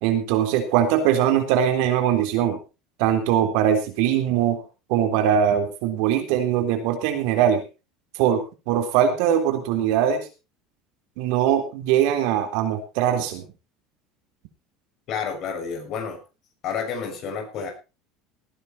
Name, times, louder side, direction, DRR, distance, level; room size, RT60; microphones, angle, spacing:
voice 1, 0.0-2.6 3.0-4.6 4.9-7.6 8.2-10.3 11.2-13.4, right 9 dB, 70° right, 6 dB, 3.7 m, -21 dB
voice 2, 15.1-16.2 16.6-17.7, left 6 dB, 50° left, 4 dB, 6.4 m, -30 dB
18.0 x 10.0 x 4.3 m, 0.31 s
supercardioid pair, 105°, 0 cm